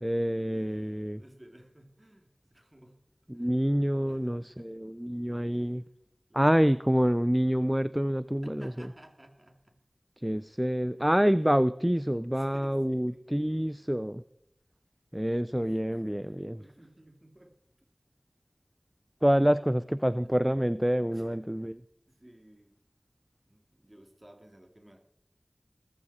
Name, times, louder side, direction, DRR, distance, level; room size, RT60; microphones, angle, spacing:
voice 1, 0.0-1.2 3.3-5.8 6.3-8.7 10.2-14.2 15.1-16.6 19.2-21.7, equal, 10° right, 15 dB, 0.5 m, -27 dB
voice 2, 0.5-3.0 3.3-3.6 4.1-4.7 5.5-5.9 6.3-7.3 8.4-9.8 11.0-11.5 12.3-13.8 15.6-17.9 20.1-20.4 21.1-21.8 22.1-22.8 23.4-25.0, right 1 dB, 30° right, 4 dB, 2.7 m, -57 dB
19.5 x 15.0 x 4.3 m, 0.78 s
wide cardioid pair, 40°, 0 cm